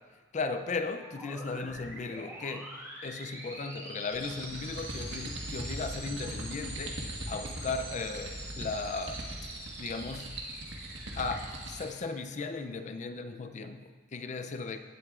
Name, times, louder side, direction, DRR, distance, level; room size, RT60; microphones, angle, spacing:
voice 1, 0.3-2.8 3.0-9.2 9.8-10.3 11.2-14.8, left 4 dB, 40° left, 9 dB, 0.4 m, -36 dB
sound 1, 0.9-12.6, right 1 dB, 15° right, 1.6 m, -46 dB
sound 2, 4.1-12.0, right 1 dB, 80° right, 1.4 m, -40 dB
16.0 x 7.8 x 2.4 m, 1.5 s
head